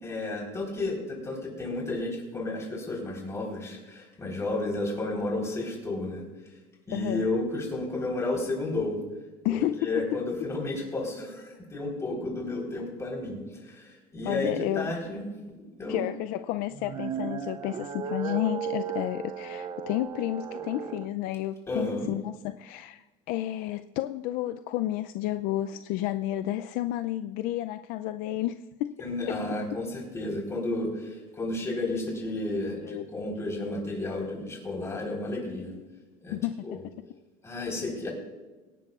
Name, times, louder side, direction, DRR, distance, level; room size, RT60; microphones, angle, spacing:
voice 1, 0.0-6.2 6.9-9.0 9.5-16.0 21.7-22.1 29.0-35.7 36.2-36.4 36.6-36.8 37.4-38.1, left 2 dB, 15° left, -2 dB, 3.9 m, -32 dB
voice 2, 6.9-7.3 9.4-10.2 14.3-14.9 15.9-28.9 32.7-33.0 36.3-36.8, left 14 dB, 65° left, 10 dB, 0.4 m, -31 dB
sound 1, 16.7-21.1, right 8 dB, 25° right, 0.4 m, -35 dB
24.5 x 10.5 x 2.4 m, 1.2 s
cardioid pair, 150°, 16 cm